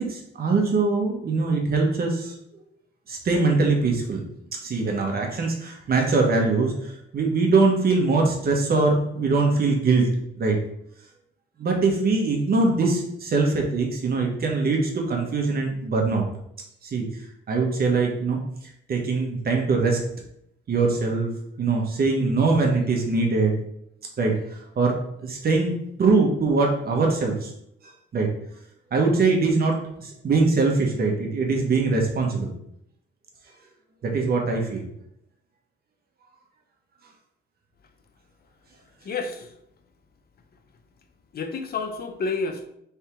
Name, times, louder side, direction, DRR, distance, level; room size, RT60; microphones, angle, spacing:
voice 1, 0.0-2.3 3.1-4.2 4.5-10.1 10.4-10.6 11.6-16.2 16.8-17.1 17.5-18.4 18.9-20.0 20.7-21.3 21.6-23.6 24.2-24.4 24.8-25.0 25.2-25.7 26.0-27.5 28.1-28.3 28.9-32.5 34.0-34.9, right 3 dB, 50° right, 1 dB, 1.3 m, -22 dB
voice 2, 39.0-39.5 41.3-42.7, left 4 dB, 50° left, 6 dB, 0.8 m, -29 dB
3.5 x 3.4 x 4.5 m, 0.73 s
cardioid pair, 90°, 20 cm